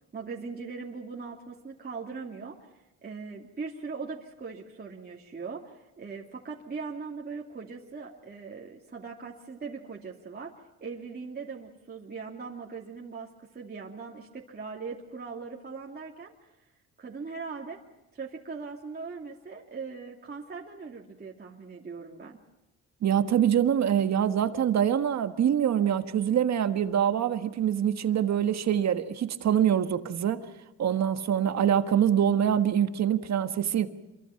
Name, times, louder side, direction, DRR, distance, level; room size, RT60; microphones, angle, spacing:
voice 1, 0.1-10.5 10.8-16.3 17.0-17.8 18.1-22.4, right 4 dB, 30° right, -2 dB, 2.7 m, -40 dB
voice 2, 23.0-30.5 30.8-33.9, right 9 dB, 60° right, 9 dB, 1.6 m, -25 dB
27.0 x 23.5 x 5.9 m, 1.0 s
cardioid pair, 90°, 30 cm